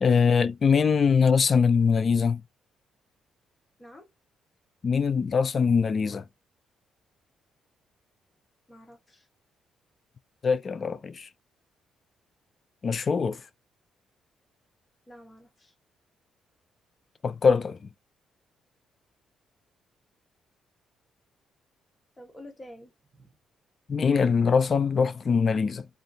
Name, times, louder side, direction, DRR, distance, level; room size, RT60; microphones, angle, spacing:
voice 1, 0.0-2.4 4.8-6.2 10.4-11.3 12.8-13.4 17.2-17.9 23.9-25.9, left 5 dB, 45° left, 0.4 m, -23 dB
voice 2, 8.7-9.3 15.1-15.7 22.2-23.3, left 1 dB, 20° left, 1.2 m, -49 dB
2.5 x 2.3 x 2.6 m
cardioid pair, 90°, 0 cm